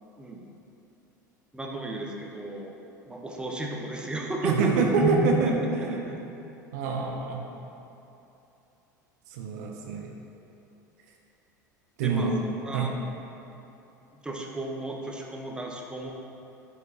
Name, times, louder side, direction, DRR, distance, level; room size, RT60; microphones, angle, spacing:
voice 1, 1.5-2.7 3.1-6.2 12.0-12.9 14.1-16.1, right 1 dB, 10° right, 0 dB, 0.9 m, -32 dB
voice 2, 4.4-6.1 6.7-7.4 9.3-10.1 12.0-12.4 12.7-12.9, right 4 dB, 60° right, 1 dB, 0.7 m, -26 dB
10.5 x 4.9 x 2.8 m, 2.9 s
figure-of-eight pair, 75°, 10 cm